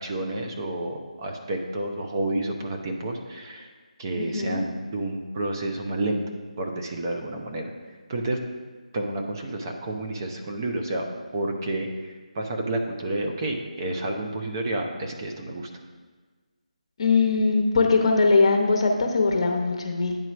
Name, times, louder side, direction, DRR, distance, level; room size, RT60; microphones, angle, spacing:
voice 1, 0.0-3.7 4.0-6.2 6.6-7.7 8.1-8.4 8.9-11.0 11.3-15.7, right 1 dB, 30° right, 2 dB, 0.7 m, -30 dB
voice 2, 4.2-4.6 17.0-20.2, left 3 dB, 45° left, 2 dB, 0.9 m, -21 dB
9.0 x 3.1 x 5.9 m, 1.4 s
figure-of-eight pair, 160°, 4 cm